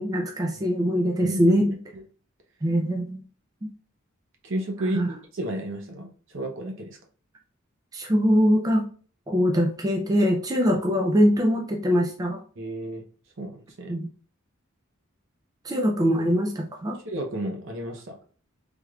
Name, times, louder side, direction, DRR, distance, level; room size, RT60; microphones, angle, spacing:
voice 1, 0.0-1.7 2.6-3.2 3.6-3.7 4.9-5.1 7.9-8.9 9.3-12.4 13.9-14.1 15.6-17.0, equal, 20° right, 1 dB, 0.4 m, -22 dB
voice 2, 1.2-1.6 4.4-7.0 12.6-13.0 13.4-13.9 17.0-18.1, right 1 dB, 65° right, 2 dB, 0.8 m, -32 dB
3.5 x 3.1 x 2.3 m, 0.41 s
head